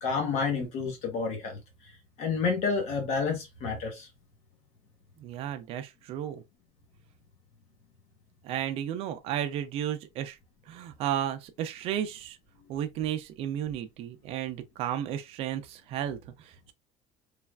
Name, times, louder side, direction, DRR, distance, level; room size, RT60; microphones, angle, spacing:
voice 1, 0.0-1.6 2.2-4.1, left 5 dB, 45° left, 0.9 m, -29 dB
voice 2, 5.2-6.4 8.4-10.4 10.7-12.4 12.7-16.7, right 10 dB, 40° right, 0.4 m, -33 dB
3.2 x 2.3 x 2.3 m
cardioid pair, 175°, 15 cm